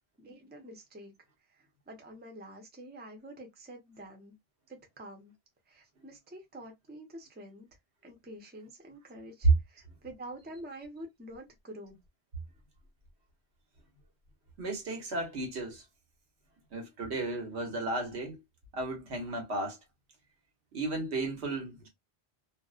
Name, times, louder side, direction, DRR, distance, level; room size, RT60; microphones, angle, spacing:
voice 1, 0.2-1.1 1.5-4.3 4.7-5.3 5.7-7.7 8.0-12.0, right 1 dB, 15° right, 0.4 m, -47 dB
voice 2, 14.6-15.8 16.7-18.4 18.7-19.8 20.7-21.9, right 3 dB, 85° right, 1.2 m, -32 dB
2.6 x 2.0 x 2.3 m
omnidirectional pair, 1.1 m